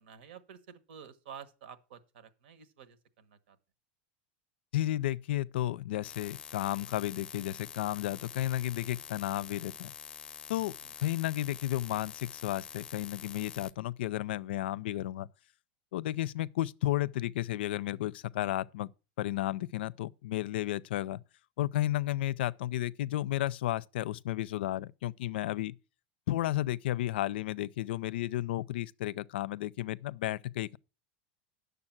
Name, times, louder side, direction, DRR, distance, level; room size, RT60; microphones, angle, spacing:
voice 1, 0.0-3.6 10.8-10.9, right 7 dB, 85° right, 1.3 m, -51 dB
voice 2, 4.7-9.9 10.5-10.7 11.0-15.3 15.9-18.9 19.2-21.2 21.6-25.8 26.3-30.8, left 14 dB, 90° left, 0.4 m, -33 dB
sound 1, 6.0-13.7, left 7 dB, 20° left, 0.6 m, -46 dB
9.8 x 6.9 x 5.9 m
supercardioid pair, 160°, 5 cm